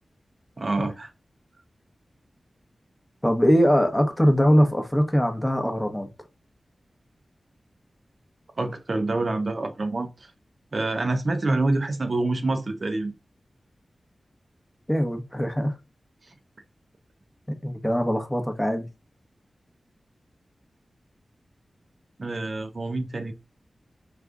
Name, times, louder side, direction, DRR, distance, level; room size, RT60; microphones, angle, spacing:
voice 1, 0.6-1.1 8.6-10.3 10.7-13.1 22.2-23.3, right 2 dB, 50° right, 0.5 m, -26 dB
voice 2, 3.2-6.1 14.9-15.8 17.5-18.9, equal, 10° left, 0.8 m, -22 dB
4.9 x 2.3 x 3.5 m
wide cardioid pair, 95°, 0 cm